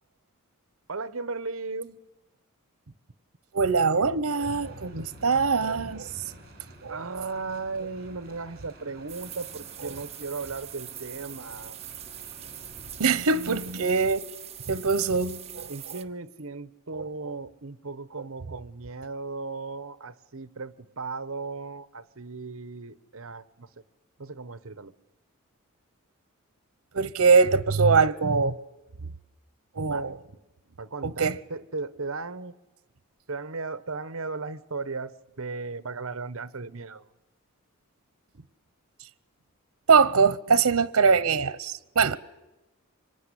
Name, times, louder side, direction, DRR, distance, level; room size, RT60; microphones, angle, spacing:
voice 1, 0.9-2.0 6.9-11.8 15.7-23.7 24.2-24.9 29.9-30.1 30.8-32.5 33.3-37.1 38.3-38.5, right 3 dB, 65° right, 1.1 m, -36 dB
voice 2, 3.5-6.1 6.8-7.0 13.0-14.2 14.7-15.7 17.0-17.1 26.9-28.6 29.8-30.1 31.0-31.4 39.9-42.2, right 5 dB, 90° right, 0.9 m, -22 dB
sound 1, 4.4-13.7, right 1 dB, 45° right, 7.2 m, -49 dB
sound 2, 9.1-16.0, right 10 dB, 30° right, 1.2 m, -42 dB
25.5 x 23.0 x 10.0 m
head